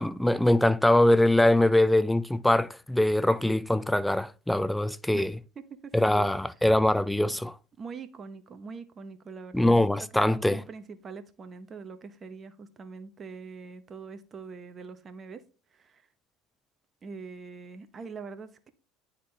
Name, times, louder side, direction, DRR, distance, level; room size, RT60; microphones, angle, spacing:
voice 1, 0.0-5.3 5.9-7.5 9.5-10.6, left 1 dB, 5° left, 0.4 m, -23 dB
voice 2, 5.6-6.3 7.8-15.4 15.7-16.1 17.0-18.7, right 5 dB, 30° right, 0.9 m, -43 dB
9.7 x 3.7 x 3.2 m
supercardioid pair, 100°, 0 cm